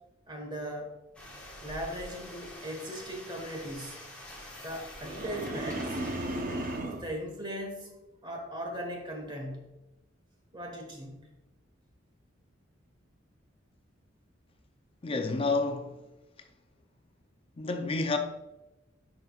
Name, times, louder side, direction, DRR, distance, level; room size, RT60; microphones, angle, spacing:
voice 1, 0.3-1.0 1.6-4.0 4.6-6.0 6.8-8.0 8.2-9.8 10.5-11.3, equal, 25° right, 1.3 m, -38 dB
sound 1, 1.2-6.8, left 1 dB, 5° left, 1.3 m, -46 dB
sound 2, 5.0-7.1, right 1 dB, 45° right, 0.6 m, -35 dB
voice 2, 15.0-15.9 17.6-18.2, left 3 dB, 30° left, 0.5 m, -29 dB
10.0 x 5.1 x 2.3 m
head